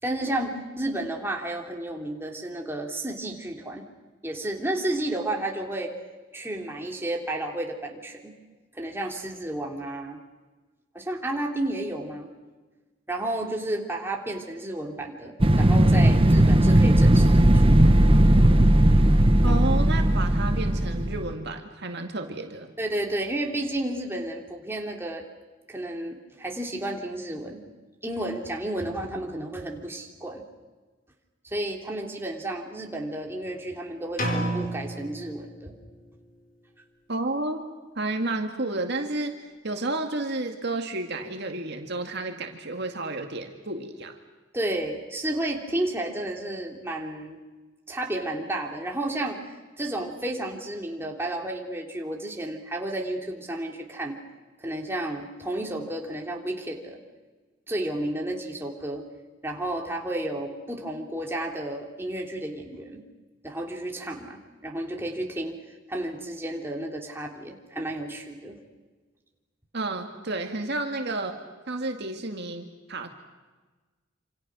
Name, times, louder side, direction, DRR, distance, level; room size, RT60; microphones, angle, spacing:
voice 1, 0.0-3.8 4.2-5.9 6.3-8.3 8.7-10.2 10.9-12.3 13.1-18.0 19.5-19.6 22.8-25.2 25.7-27.6 28.0-30.4 31.4-35.7 44.5-47.4 47.9-49.4 49.8-54.1 54.6-57.0 57.7-59.0 59.4-63.0 63.4-65.6 65.9-68.5, right 1 dB, 10° right, 0 dB, 3.1 m, -32 dB
sound 1, 15.4-21.3, right 1 dB, 25° right, 1.1 m, -18 dB
voice 2, 19.4-22.7 37.1-37.6 38.0-39.4 39.6-44.1 69.7-71.4 71.7-73.1, right 2 dB, 55° right, 4 dB, 2.1 m, -31 dB
sound 2, 34.2-36.1, right 1 dB, 45° left, 4.2 m, -31 dB
27.5 x 27.0 x 6.3 m, 1.3 s
head